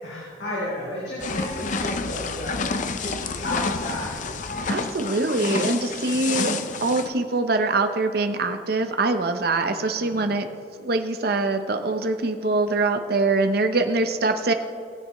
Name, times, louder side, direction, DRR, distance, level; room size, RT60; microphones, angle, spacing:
voice 1, 0.0-2.6 3.0-4.3 9.9-10.2, left 1 dB, 75° left, -7 dB, 3.0 m, -32 dB
sound 1, 1.2-7.1, left 4 dB, 45° left, 0.5 m, -29 dB
voice 2, 4.7-10.5 10.8-14.5, right 3 dB, 55° right, 7 dB, 0.7 m, -23 dB
19.5 x 7.7 x 3.1 m, 2.4 s
head